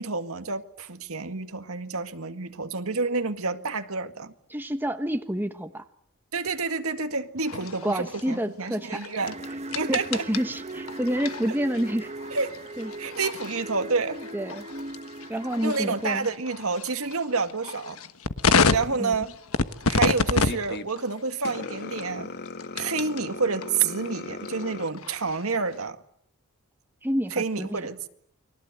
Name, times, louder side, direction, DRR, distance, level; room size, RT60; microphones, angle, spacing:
voice 1, 0.0-4.3 6.3-9.4 9.8-10.2 12.3-12.6 13.0-14.2 15.6-18.0 18.7-19.3 19.9-22.3 22.7-26.0 27.4-28.1, right 4 dB, 75° right, 2.0 m, -29 dB
voice 2, 4.5-5.8 7.8-9.1 9.9-12.1 12.8-12.9 14.3-14.6 15.3-16.3 19.0-19.2 27.0-27.9, equal, 10° right, 1.3 m, -28 dB
sound 1, 7.4-23.2 23.6-25.7, left 4 dB, 70° left, 1.3 m, -30 dB
sound 2, 9.2-16.0, right 2 dB, 30° right, 1.1 m, -39 dB
sound 3, 20.3-20.9 21.4-24.9, left 3 dB, 50° left, 1.3 m, -38 dB
29.5 x 23.5 x 8.1 m
head